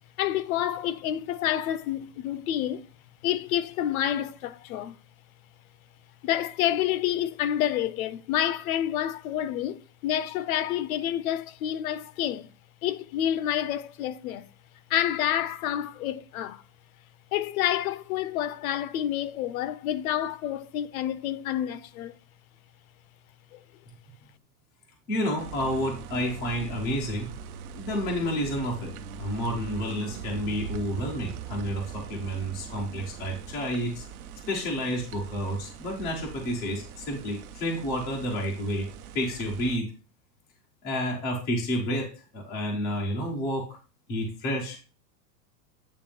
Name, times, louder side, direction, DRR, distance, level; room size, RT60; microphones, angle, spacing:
voice 1, 0.2-2.9 3.2-5.0 6.2-12.5 12.8-14.5 14.9-16.6 17.3-22.2 23.5-23.6, left 11 dB, 60° left, 0.6 m, -28 dB
voice 2, 25.1-27.3 27.7-28.9 29.2-34.0 34.5-38.9 39.1-39.9 40.8-43.8 44.1-44.8, equal, 10° left, 0.3 m, -30 dB
sound 1, 25.4-39.8, right 7 dB, 60° right, 0.9 m, -41 dB
8.5 x 3.1 x 4.9 m
supercardioid pair, 165°, 49 cm